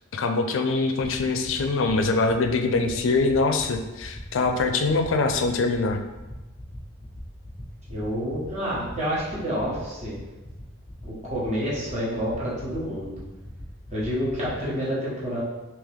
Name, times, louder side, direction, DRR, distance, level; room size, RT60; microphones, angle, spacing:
voice 1, 0.1-6.0, left 3 dB, 70° left, 5 dB, 0.4 m, -23 dB
sound 1, 1.1-14.5, left 1 dB, 5° left, 1.1 m, -42 dB
voice 2, 7.9-10.1 11.0-13.2 13.9-15.4, equal, 35° right, -8 dB, 1.2 m, -28 dB
3.6 x 2.9 x 3.5 m, 1.1 s
head